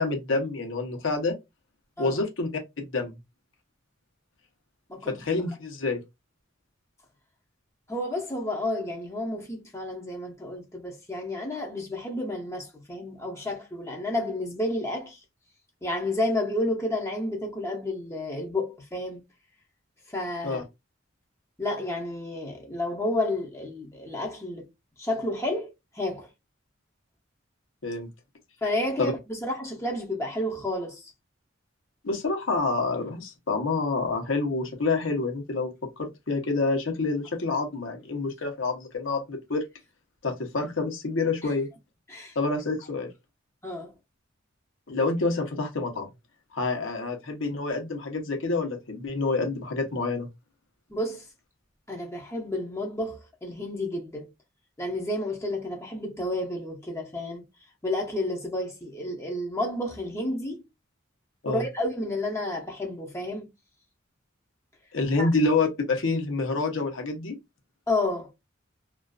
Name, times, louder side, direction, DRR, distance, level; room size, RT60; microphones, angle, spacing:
voice 1, 0.0-1.3 2.0-2.5 2.8-3.2 5.1-6.0 20.4-20.6 27.8-28.1 29.0-29.1 32.0-39.6 40.2-41.7 42.3-43.1 44.9-46.1 46.5-50.3 61.4-61.6 64.9-67.4, left 3 dB, 80° left, 0.9 m, -27 dB
voice 2, 7.9-15.2 15.8-19.2 20.1-20.6 21.6-24.7 25.0-26.3 28.6-31.1 42.1-42.4 43.6-43.9 50.9-51.3 51.9-54.3 54.8-57.4 57.8-60.6 61.5-63.5 65.2-65.3 67.9-68.3, left 1 dB, 15° left, 0.6 m, -31 dB
2.4 x 2.4 x 2.3 m
head